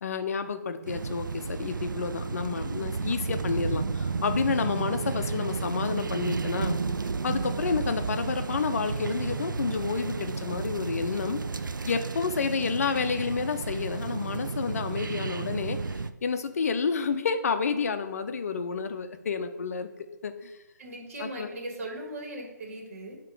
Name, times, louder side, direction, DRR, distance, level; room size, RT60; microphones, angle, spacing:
voice 1, 0.0-6.8 7.2-15.8 16.2-19.9 20.2-20.6 21.2-21.5, left 5 dB, 50° left, 9 dB, 0.6 m, -30 dB
sound 1, 0.9-16.1, right 4 dB, 90° right, 0.4 m, -32 dB
voice 2, 20.8-23.2, right 1 dB, 45° right, 1 dB, 1.8 m, -38 dB
7.3 x 3.0 x 4.8 m, 1.0 s
figure-of-eight pair, 150°, 10 cm